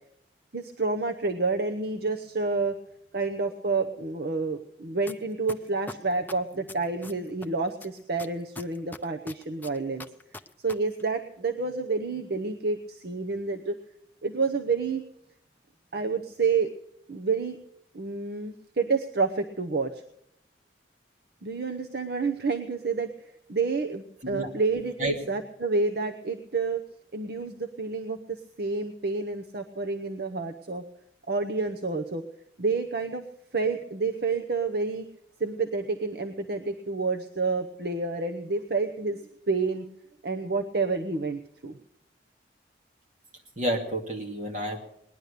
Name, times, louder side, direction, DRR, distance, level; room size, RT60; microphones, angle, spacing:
voice 1, 0.5-2.8 3.1-10.0 10.6-13.8 14.2-15.0 15.9-16.7 17.1-17.6 17.9-20.0 21.4-26.8 27.1-30.8 31.3-32.2 32.6-33.2 33.5-35.1 35.4-39.8 40.2-41.8, right 4 dB, 60° right, 5 dB, 0.9 m, -29 dB
sound 1, 5.1-5.2 5.5-7.5 7.8-10.7 11.0-11.1, left 2 dB, 10° left, 0.6 m, -40 dB
voice 2, 43.6-44.8, right 1 dB, 40° right, 1 dB, 2.4 m, -29 dB
19.5 x 11.0 x 6.7 m, 0.75 s
head